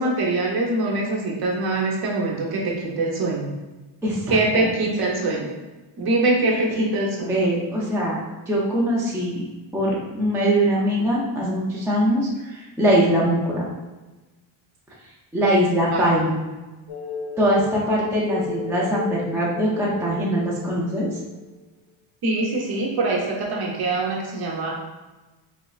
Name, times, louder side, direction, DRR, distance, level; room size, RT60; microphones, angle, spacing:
voice 1, 0.0-3.5 4.3-5.5 6.0-7.4 15.9-16.2 22.2-24.8, right 2 dB, 50° right, -2 dB, 0.8 m, -23 dB
voice 2, 4.0-4.6 6.8-6.9 7.2-8.2 8.5-9.4 9.7-13.6 15.3-16.4 17.4-21.2, equal, 5° right, -5 dB, 0.3 m, -22 dB
sound 1, 16.9-21.6, left 6 dB, 65° left, 0.6 m, -34 dB
4.2 x 3.1 x 2.4 m, 1.2 s
cardioid pair, 170°, 48 cm